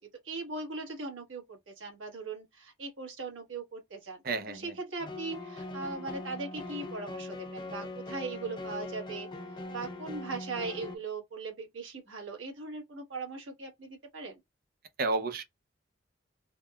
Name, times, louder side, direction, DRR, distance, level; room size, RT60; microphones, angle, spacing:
voice 1, 0.2-4.2 4.5-9.3 9.7-14.4, right 3 dB, 90° right, 1.3 m, -39 dB
voice 2, 4.2-4.6 15.0-15.4, right 3 dB, 50° right, 0.5 m, -30 dB
sound 1, 5.0-11.0, left 2 dB, 25° left, 0.4 m, -41 dB
3.4 x 2.2 x 2.2 m
head